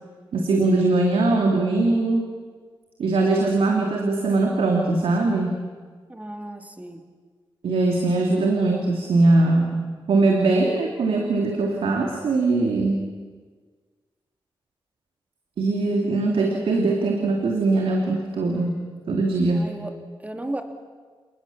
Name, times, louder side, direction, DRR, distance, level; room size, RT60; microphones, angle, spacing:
voice 1, 0.3-2.3 3.0-5.6 7.6-9.8 10.1-13.0 15.6-18.8 19.1-19.8, right 2 dB, 85° right, 1 dB, 2.8 m, -21 dB
voice 2, 6.1-7.0 19.5-19.9 20.2-20.6, right 1 dB, 15° right, 6 dB, 2.6 m, -34 dB
29.0 x 19.5 x 7.3 m, 1.5 s
cardioid pair, 90°, 9 cm